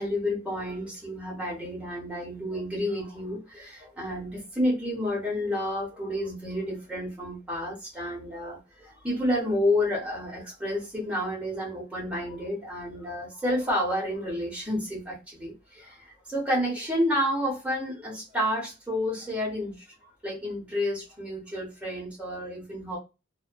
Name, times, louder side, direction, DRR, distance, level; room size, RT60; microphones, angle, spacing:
voice 1, 0.0-19.8 20.2-23.0, left 1 dB, 5° right, -3 dB, 1.0 m, -30 dB
2.5 x 2.5 x 2.2 m, 0.28 s
head